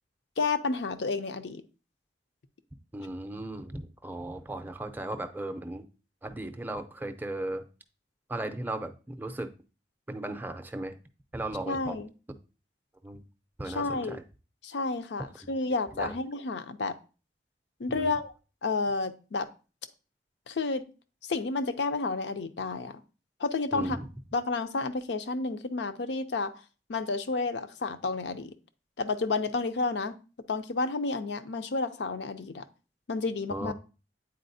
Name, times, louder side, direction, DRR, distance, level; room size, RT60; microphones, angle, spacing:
voice 1, 0.4-1.6 11.7-12.1 13.7-14.2 14.6-17.0 17.8-18.3 18.6-19.5 20.5-20.8 21.3-23.0 23.4-24.0 24.3-26.5 26.9-28.5 29.0-30.2 30.5-32.6 33.1-33.7, left 3 dB, 75° left, 10 dB, 0.5 m, -31 dB
voice 2, 2.9-5.9 6.2-7.6 8.3-9.5 10.1-11.0 11.3-12.0 13.0-13.2 13.6-14.2 15.9-16.1 17.9-18.2 23.7-24.1 33.5-33.7, right 1 dB, 10° right, 7 dB, 0.5 m, -36 dB
8.6 x 4.1 x 2.6 m, 0.34 s
head